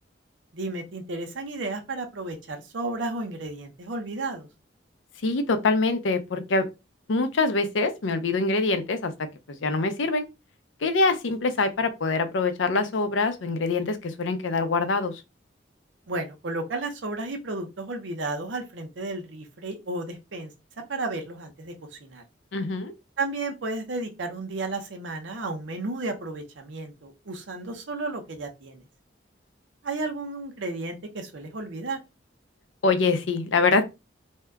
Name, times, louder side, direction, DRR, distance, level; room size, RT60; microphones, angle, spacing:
voice 1, 0.5-4.5 16.1-20.5 20.9-21.7 22.0-22.2 23.2-28.8 29.8-32.0, right 2 dB, 85° right, 0.7 m, -33 dB
voice 2, 5.2-6.7 7.1-9.1 9.6-10.3 10.8-15.1 22.5-22.9 32.8-33.8, left 3 dB, 90° left, 0.6 m, -24 dB
2.7 x 2.2 x 3.4 m
head